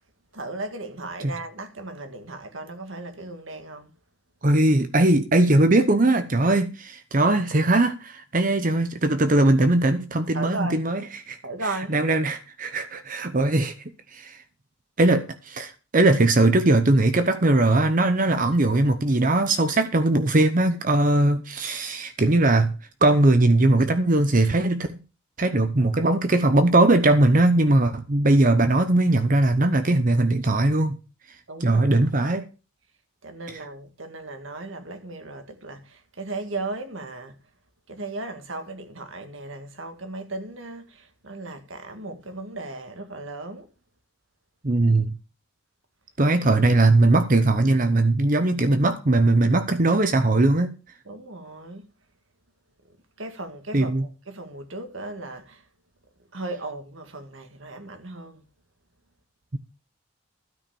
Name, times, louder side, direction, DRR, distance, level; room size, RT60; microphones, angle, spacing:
voice 1, 0.3-3.9 10.3-10.8 11.4-12.0 31.5-32.3 33.2-37.4 37.9-43.7 51.1-51.9 53.2-55.7 56.3-58.5, right 2 dB, 70° right, 1.9 m, -36 dB
voice 2, 4.4-11.0 11.3-11.4 11.9-13.7 14.1-14.4 15.0-22.7 23.0-24.9 25.4-31.0 31.6-32.5 44.6-45.1 46.2-50.7 53.7-54.0, right 2 dB, 40° right, 0.8 m, -20 dB
12.5 x 5.7 x 7.0 m
head